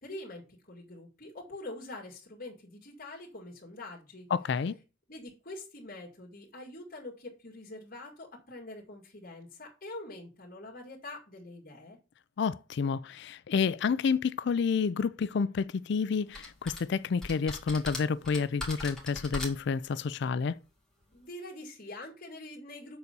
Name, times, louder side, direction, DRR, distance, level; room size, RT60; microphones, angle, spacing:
voice 1, 0.0-4.3 5.1-12.0 21.1-23.0, left 2 dB, 50° left, 2.2 m, -45 dB
voice 2, 4.3-4.8 12.4-20.6, left 5 dB, 65° left, 0.4 m, -29 dB
sound 1, 16.3-16.8 17.2-19.8, left 1 dB, 5° left, 2.2 m, -39 dB
6.9 x 4.1 x 6.6 m
head